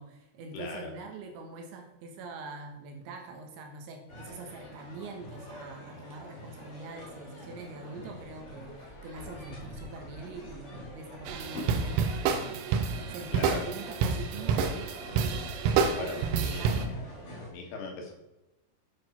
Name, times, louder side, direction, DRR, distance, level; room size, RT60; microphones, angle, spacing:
voice 1, 0.0-12.6 12.9-16.9, right 3 dB, 70° right, 4 dB, 3.4 m, -44 dB
voice 2, 0.5-0.9 13.3-13.7 16.0-16.8 17.5-18.1, left 3 dB, 75° left, 1 dB, 4.4 m, -39 dB
sound 1, 4.1-17.5, left 1 dB, 40° left, 1.0 m, -45 dB
sound 2, 11.3-16.9, right 6 dB, 85° right, 3.6 m, -28 dB
9.6 x 7.6 x 5.8 m, 0.95 s
omnidirectional pair, 6.0 m